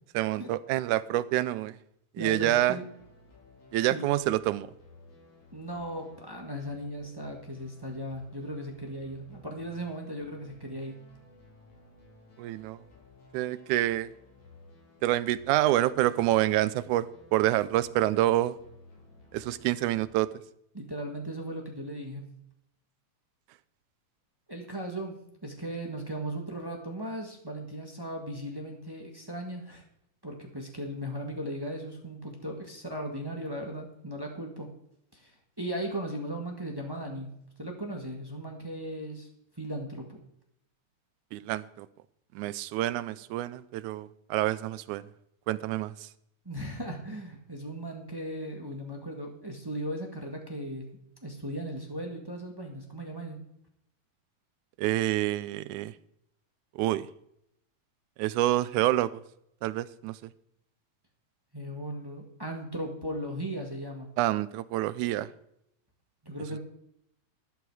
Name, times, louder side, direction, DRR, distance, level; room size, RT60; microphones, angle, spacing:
voice 1, 0.2-1.8 2.2-2.8 3.7-4.7 12.4-12.8 13.3-14.1 15.0-18.6 19.3-20.3 41.3-41.9 42.4-45.1 45.5-46.1 54.8-55.9 56.8-57.1 58.2-59.2 59.6-60.2 64.2-65.3, right 15 dB, 90° right, 2.1 m, -27 dB
voice 2, 2.2-2.8 3.8-4.1 5.5-11.0 20.7-22.3 24.5-29.8 30.2-34.7 35.1-39.3 39.6-40.2 46.4-50.9 51.2-53.4 61.5-64.1 66.2-66.6, right 1 dB, 15° right, 0.8 m, -37 dB
sound 1, 2.7-20.2, left 2 dB, 80° left, 5.8 m, -55 dB
12.5 x 11.0 x 4.8 m
omnidirectional pair, 3.4 m